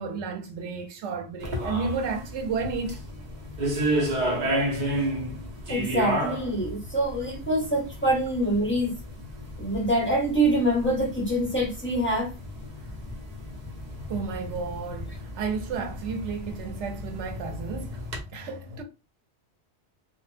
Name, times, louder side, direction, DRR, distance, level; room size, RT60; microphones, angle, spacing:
voice 1, 0.0-3.0 5.9-6.0 14.0-18.8, right 4 dB, 90° right, 0.9 m, -32 dB
sound 1, 1.4-18.2, right 1 dB, 45° right, 0.8 m, -32 dB
voice 2, 5.7-8.9 9.6-12.3, right 1 dB, 15° left, 0.7 m, -25 dB
2.2 x 2.1 x 3.2 m
omnidirectional pair, 1.1 m